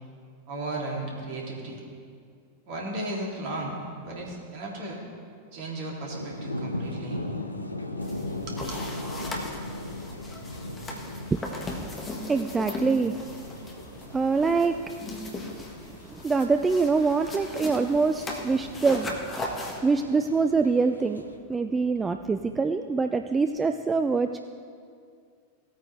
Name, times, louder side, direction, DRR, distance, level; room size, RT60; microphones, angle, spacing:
voice 1, 0.5-1.8 2.7-5.0 5.5-7.2 8.5-8.8, right 2 dB, 45° right, -2 dB, 2.7 m, -35 dB
sound 1, 6.1-21.4, left 1 dB, 85° left, 0.8 m, -39 dB
sound 2, 8.0-19.8, left 2 dB, 20° left, 1.6 m, -38 dB
voice 2, 11.3-11.7 12.2-13.2 14.1-14.8 16.0-19.1 19.8-24.4, right 4 dB, 15° right, 7 dB, 0.4 m, -25 dB
17.0 x 9.0 x 3.3 m, 2.2 s
figure-of-eight pair, 90°, 0 cm